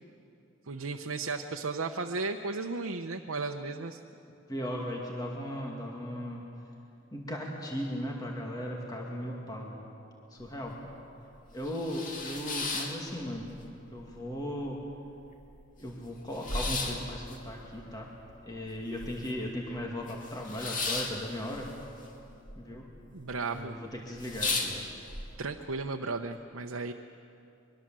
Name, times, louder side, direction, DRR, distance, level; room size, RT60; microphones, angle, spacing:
voice 1, 0.7-4.0 23.1-23.8 25.4-26.9, right 3 dB, 90° right, 3 dB, 0.8 m, -35 dB
voice 2, 4.5-6.4 7.1-9.8 10.3-10.7 11.5-13.5 13.9-14.8 15.8-18.1 18.4-21.7 22.6-22.9 23.5-24.9, equal, 20° left, -1 dB, 2.2 m, -37 dB
sound 1, 10.4-10.5 10.9-11.0 11.4-13.7 14.0-14.7 15.1-15.2 15.3-19.5 19.8-22.6 22.8-23.4 23.7-23.8 24.1-25.2, left 3 dB, 40° left, 2.3 m, -35 dB
23.0 x 22.5 x 7.6 m, 2.7 s
head